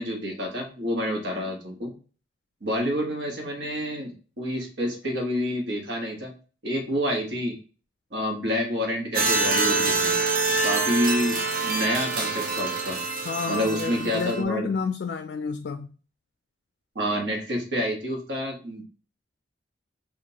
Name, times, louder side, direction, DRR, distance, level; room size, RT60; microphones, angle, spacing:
voice 1, 0.0-1.9 2.6-6.3 6.6-7.5 8.1-10.1 10.6-11.4 11.6-13.0 13.5-14.7 16.9-18.8, equal, 75° right, 1.3 m, -28 dB
sound 1, 9.1-14.4, right 3 dB, 50° right, 0.8 m, -26 dB
voice 2, 13.3-15.9, left 5 dB, 65° left, 0.3 m, -30 dB
5.9 x 2.5 x 2.9 m
head